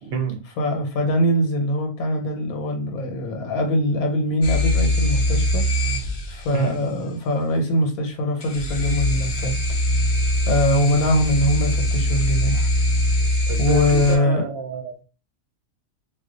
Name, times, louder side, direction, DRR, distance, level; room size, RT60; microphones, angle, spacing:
voice 1, 0.0-0.4 6.5-6.8 13.5-15.0, right 6 dB, 55° right, 0.8 m, -29 dB
voice 2, 0.6-5.7 6.3-9.5 10.5-12.7 13.6-14.5, equal, 80° left, 1.2 m, -22 dB
sound 1, 4.4-6.7 8.4-14.2, left 1 dB, 45° left, 0.7 m, -22 dB
2.5 x 2.3 x 3.7 m
omnidirectional pair, 1.5 m